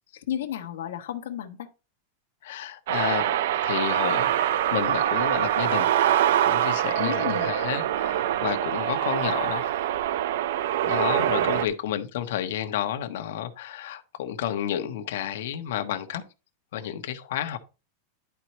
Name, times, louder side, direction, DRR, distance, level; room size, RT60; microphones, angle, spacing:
voice 1, 0.1-1.7 7.0-7.5 11.4-11.7, left 10 dB, 85° left, 1.3 m, -33 dB
voice 2, 2.4-9.8 10.8-16.2 16.7-17.6, left 10 dB, 65° left, 1.2 m, -31 dB
sound 1, 2.9-11.7, right 11 dB, 65° right, 0.5 m, -24 dB
11.0 x 4.6 x 4.2 m
supercardioid pair, 170°, 0 cm